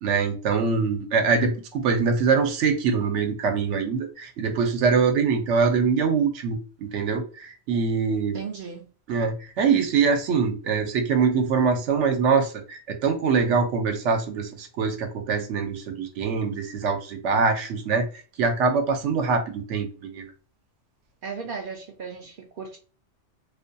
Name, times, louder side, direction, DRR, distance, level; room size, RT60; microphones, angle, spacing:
voice 1, 0.0-8.4 9.1-18.1 18.4-20.2, right 5 dB, 80° right, 0.9 m, -23 dB
voice 2, 8.3-8.9 21.2-22.8, right 5 dB, 60° right, 0.6 m, -36 dB
2.4 x 2.2 x 2.6 m
omnidirectional pair, 1.2 m